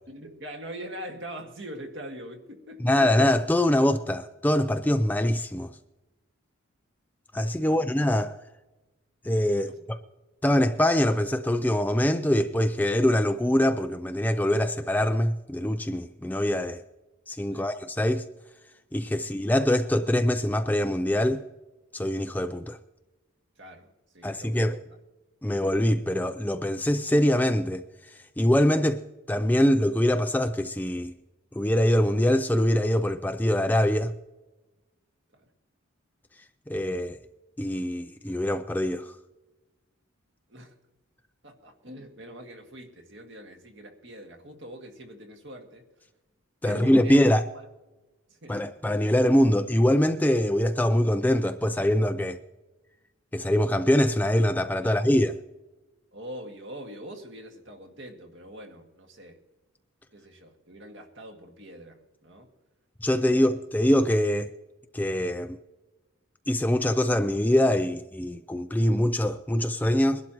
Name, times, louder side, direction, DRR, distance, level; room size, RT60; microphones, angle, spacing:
voice 1, 0.1-3.1 7.6-7.9 9.6-9.8 17.5-17.7 19.2-19.3 23.6-24.7 35.3-35.5 40.5-40.8 41.4-45.9 46.7-47.2 47.5-47.7 48.3-48.6 54.8-55.1 56.1-59.4 60.1-62.5 63.1-63.6, right 1 dB, 55° right, 1.8 m, -43 dB
voice 2, 2.8-5.7 7.3-8.4 9.2-10.0 10.4-16.8 17.3-18.3 18.9-21.4 21.9-22.8 24.2-24.8 25.4-27.8 28.4-29.0 29.3-31.1 31.5-34.1 36.7-37.2 37.6-39.1 46.6-47.4 48.5-52.4 53.3-55.3 63.0-64.5 64.9-65.6 66.5-70.2, left 1 dB, 10° left, 0.3 m, -23 dB
22.0 x 12.0 x 3.0 m
head